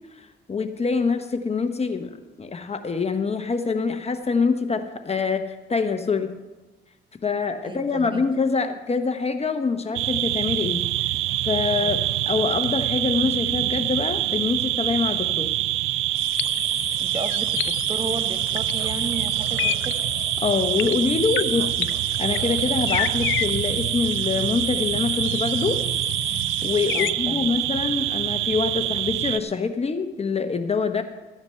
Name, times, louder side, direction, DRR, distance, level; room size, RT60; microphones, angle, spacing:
voice 1, 0.2-6.3 7.2-10.8 11.4-12.0 12.3-15.6 20.4-25.8 26.6-31.0, left 4 dB, 30° left, 8 dB, 1.0 m, -25 dB
voice 2, 7.6-8.2 11.8-12.1 17.0-20.0 26.9-27.6, right 3 dB, 25° right, 7 dB, 1.3 m, -34 dB
sound 1, 9.9-29.4, right 15 dB, 90° right, 0.4 m, -25 dB
sound 2, 16.2-27.1, left 15 dB, 80° left, 0.5 m, -32 dB
14.0 x 9.6 x 5.6 m, 1.2 s
cardioid pair, 90°, 20 cm